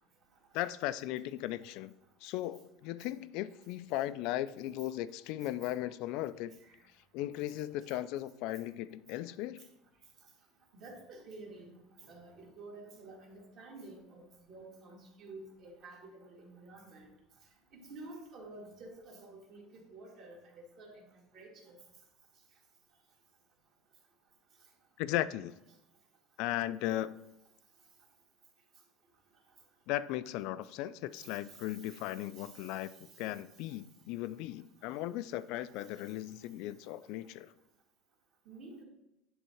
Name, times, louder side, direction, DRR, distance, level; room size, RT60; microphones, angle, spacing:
voice 1, 0.5-1.9 2.2-6.5 7.1-9.6 25.0-25.5 26.4-27.2 29.9-37.5, left 14 dB, 55° left, 15 dB, 0.3 m, -37 dB
voice 2, 10.8-17.1 17.7-20.4 20.8-21.0 21.3-21.8 31.2-31.7 32.4-32.6 38.5-38.8, right 2 dB, 40° right, -1 dB, 2.1 m, -50 dB
10.0 x 3.6 x 4.5 m, 0.93 s
cardioid pair, 165°, 0 cm